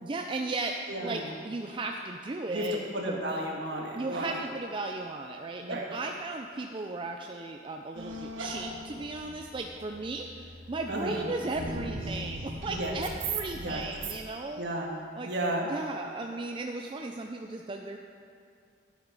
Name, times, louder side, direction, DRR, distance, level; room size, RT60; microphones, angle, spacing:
voice 1, 0.0-0.7 1.0-2.8 3.9-10.3 10.7-14.7 15.1-15.3 15.6-18.0, right 3 dB, 25° right, 3 dB, 0.4 m, -36 dB
voice 2, 0.9-1.3 2.5-2.7 2.9-4.4 5.6-6.0 10.9-11.2 12.7-12.9 13.5-13.8 14.6-14.9 15.2-15.7, right 1 dB, 60° right, -1 dB, 1.6 m, -33 dB
sound 1, 7.9-14.1, equal, 80° right, 1.5 m, -41 dB
10.5 x 8.0 x 5.4 m, 2.4 s
head